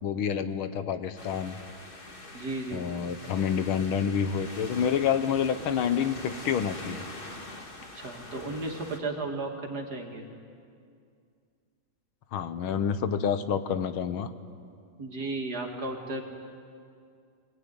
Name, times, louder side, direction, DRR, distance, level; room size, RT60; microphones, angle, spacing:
voice 1, 0.0-1.6 2.7-7.0 12.3-14.3, left 7 dB, 85° left, 11 dB, 1.9 m, -28 dB
sound 1, 1.2-9.0, left 2 dB, 25° left, 1.9 m, -43 dB
voice 2, 2.3-2.9 8.0-10.2 15.0-16.2, right 2 dB, 50° right, 1 dB, 3.1 m, -34 dB
25.0 x 20.0 x 9.7 m, 2.3 s
omnidirectional pair, 2.2 m